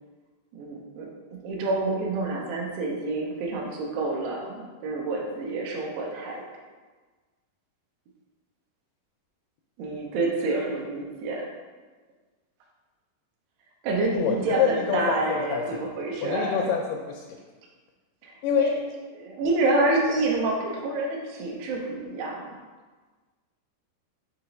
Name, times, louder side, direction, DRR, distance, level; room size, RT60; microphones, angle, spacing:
voice 1, 0.5-6.4 9.8-11.5 13.8-16.7 18.2-18.7 19.1-22.5, right 2 dB, 85° right, -1 dB, 2.9 m, -28 dB
voice 2, 14.1-15.9 16.2-17.4 18.4-18.9, left 7 dB, 80° left, 2 dB, 2.3 m, -26 dB
6.7 x 2.9 x 5.2 m, 1.3 s
omnidirectional pair, 4.6 m